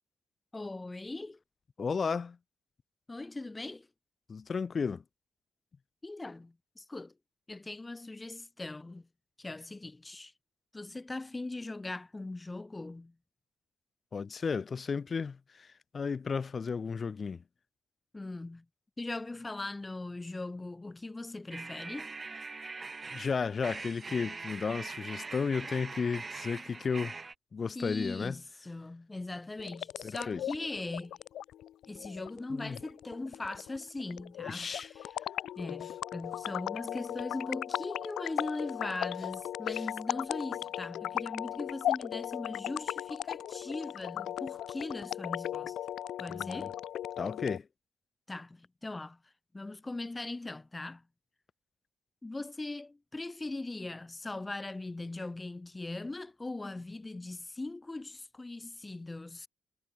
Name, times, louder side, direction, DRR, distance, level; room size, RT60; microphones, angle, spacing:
voice 1, 0.5-1.4 3.1-3.9 6.0-7.1 7.5-9.1 9.4-10.3 10.7-13.1 18.1-18.6 19.0-22.1 27.7-31.2 31.9-35.1 35.6-45.8 46.2-46.8 48.3-49.2 49.5-51.0 52.2-59.5, left 2 dB, 15° left, 6.1 m, -40 dB
voice 2, 1.8-2.4 4.3-5.0 14.1-15.7 15.9-17.4 23.1-27.1 27.5-28.4 30.0-30.4 32.5-32.8 34.5-34.9 39.7-39.8 46.3-46.7 47.2-47.7, left 5 dB, 40° left, 0.9 m, -33 dB
sound 1, 21.5-27.4, right 4 dB, 30° right, 2.3 m, -42 dB
sound 2, 29.6-47.6, left 11 dB, 85° left, 1.3 m, -37 dB
cardioid pair, 120°, 0 cm